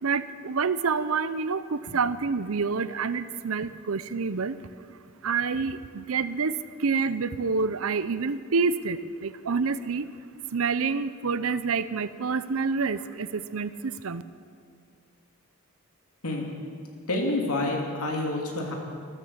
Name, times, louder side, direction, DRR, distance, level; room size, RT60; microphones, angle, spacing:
voice 1, 0.0-4.6 5.2-10.1 10.5-14.2, right 5 dB, 75° right, 14 dB, 0.6 m, -28 dB
voice 2, 17.1-18.7, left 2 dB, 85° left, 1 dB, 2.8 m, -28 dB
15.0 x 13.0 x 7.4 m, 2.3 s
head